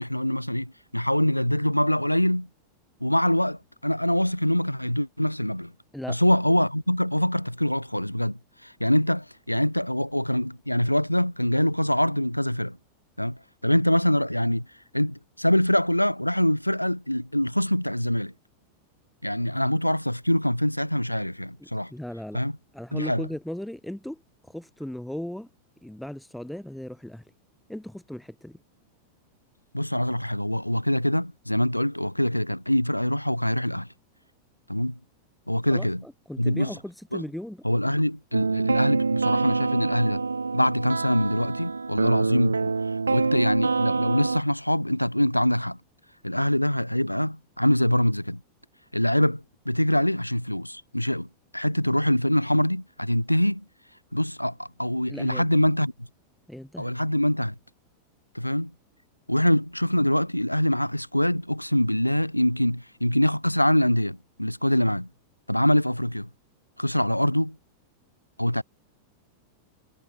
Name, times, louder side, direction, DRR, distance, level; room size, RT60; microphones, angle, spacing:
voice 1, 0.0-2.5 3.0-5.7 6.1-12.8 13.2-14.7 14.9-18.3 19.2-21.9 22.3-22.5 22.9-23.3 29.7-33.9 34.7-35.0 35.5-36.0 36.4-36.8 37.1-37.2 37.6-40.2 40.5-45.8 46.2-48.4 48.9-51.3 51.5-53.6 54.1-55.9 56.8-57.5 58.3-58.7 59.3-65.1 65.5-66.3 66.8-67.6 68.4-68.6, left 1 dB, 90° left, 0.8 m, -24 dB
voice 2, 21.6-22.4 22.7-25.5 25.8-27.3 27.7-28.6 35.7-37.6 55.1-55.7 56.5-56.9, left 1 dB, ahead, 1.6 m, -37 dB
sound 1, 38.3-44.4, right 4 dB, 80° right, 0.3 m, -26 dB
figure-of-eight pair, 90°, 0 cm